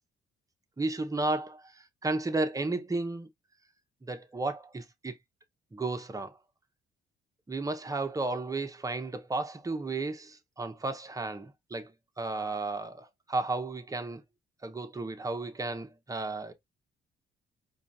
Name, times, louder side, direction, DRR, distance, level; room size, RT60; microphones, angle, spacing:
voice 1, 0.8-1.7 2.0-3.3 4.0-5.1 5.7-6.4 7.5-11.9 12.2-14.2 14.6-16.5, right 2 dB, 15° right, 0.8 m, -33 dB
4.8 x 2.4 x 2.7 m
cardioid pair, 90°, 20 cm